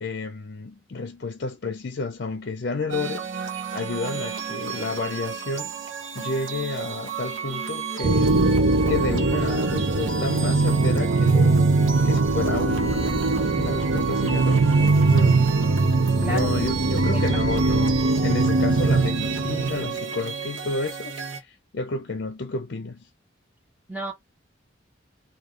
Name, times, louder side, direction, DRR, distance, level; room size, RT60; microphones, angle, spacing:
voice 1, 0.0-3.3 3.7-5.7 6.1-8.4 8.9-11.7 12.0-15.4 16.2-23.1, left 3 dB, 55° left, 0.6 m, -31 dB
sound 1, 2.9-21.4, right 6 dB, 85° right, 1.0 m, -33 dB
sound 2, 8.0-20.0, right 3 dB, 65° right, 0.6 m, -21 dB
voice 2, 16.2-16.5 17.0-17.2 23.9-24.1, equal, 10° right, 1.3 m, -31 dB
3.7 x 2.7 x 3.3 m
head